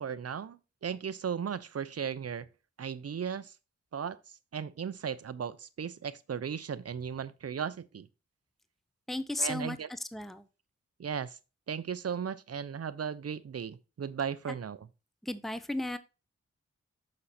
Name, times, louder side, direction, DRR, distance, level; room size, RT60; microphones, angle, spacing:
voice 1, 0.0-2.5 2.8-3.5 3.9-4.2 4.5-8.1 9.4-9.9 11.0-11.4 11.7-14.8, right 7 dB, 55° right, 0.7 m, -36 dB
voice 2, 9.1-10.4 14.5-14.6 15.2-16.0, left 1 dB, ahead, 0.7 m, -35 dB
6.5 x 5.8 x 4.2 m
cardioid pair, 50°, 29 cm